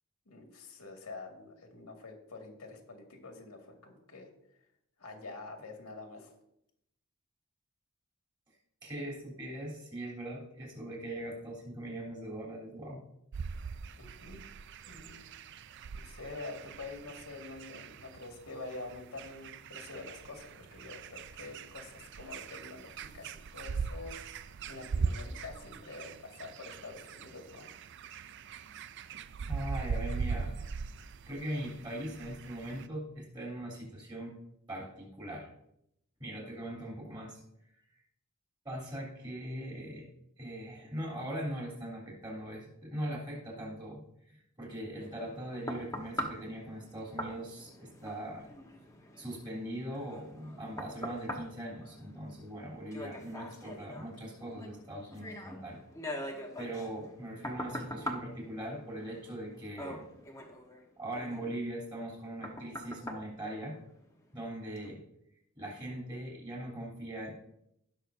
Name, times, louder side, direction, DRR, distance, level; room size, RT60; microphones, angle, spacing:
voice 1, 0.3-4.3 5.0-6.4 14.0-14.4 14.9-15.3 15.9-27.7, left 3 dB, 85° left, 2 dB, 2.0 m, -46 dB
voice 2, 8.8-13.0 29.4-30.7 31.3-34.4 34.7-35.5 36.2-37.4 38.7-40.1 40.4-48.5 49.2-55.8 56.6-60.1 61.0-63.8 64.3-65.0 65.6-67.3, right 1 dB, 20° right, -2 dB, 3.5 m, -40 dB
sound 1, 13.3-32.9, right 5 dB, 55° right, 0.4 m, -41 dB
sound 2, 45.0-64.3 64.8-64.9, equal, 15° left, 1.1 m, -44 dB
17.5 x 6.3 x 2.7 m, 0.77 s
head